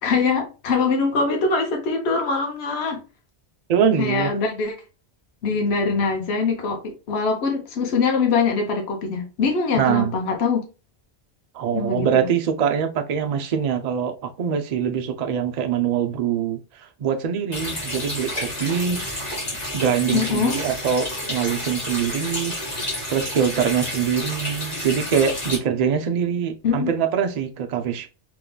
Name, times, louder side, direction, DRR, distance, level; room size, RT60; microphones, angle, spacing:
voice 1, 0.0-3.0 4.0-4.8 5.4-10.6 11.7-12.3 20.1-20.6 26.6-26.9, left 4 dB, 75° left, 1.0 m, -23 dB
voice 2, 3.7-4.3 9.7-10.1 11.5-19.3 19.7-22.5 23.1-28.1, right 8 dB, 50° right, 0.5 m, -23 dB
Water tap faucet, 17.5-25.6, left 1 dB, 40° left, 1.5 m, -30 dB
3.6 x 2.9 x 2.3 m
omnidirectional pair, 1.1 m